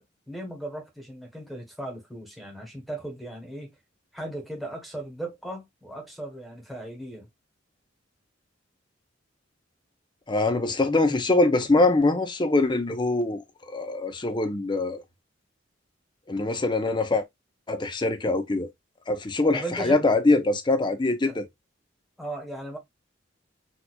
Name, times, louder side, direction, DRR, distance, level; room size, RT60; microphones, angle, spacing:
voice 1, 0.3-3.7 4.1-7.3 19.5-20.0 21.3-21.4 22.2-22.8, right 1 dB, ahead, 1.2 m, -37 dB
voice 2, 10.3-13.4 13.7-15.0 16.3-17.2 17.7-18.7 19.1-21.5, left 2 dB, 25° left, 0.6 m, -23 dB
4.3 x 2.7 x 2.2 m
head